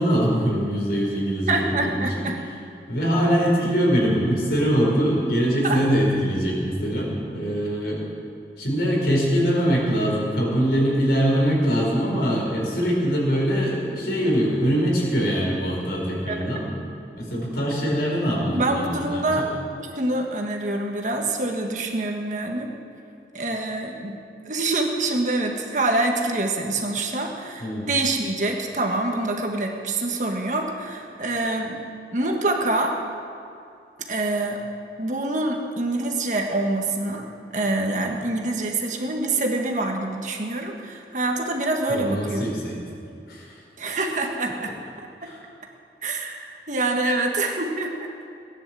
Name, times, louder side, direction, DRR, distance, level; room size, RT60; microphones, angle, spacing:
voice 1, 0.0-2.3 2.9-8.0 8.6-16.8 17.2-19.5 27.6-27.9 41.9-43.0 43.3-43.6 45.2-45.4, equal, 65° left, -2 dB, 4.6 m, -23 dB
voice 2, 1.5-2.3 5.6-5.8 16.3-16.4 18.5-19.5 19.8-22.7 23.3-24.1 24.4-31.8 32.1-33.0 34.1-34.6 35.0-37.2 37.5-42.4 43.8-44.7 46.0-48.1, right 2 dB, 45° right, 1 dB, 1.6 m, -25 dB
18.0 x 10.0 x 7.6 m, 2.6 s
head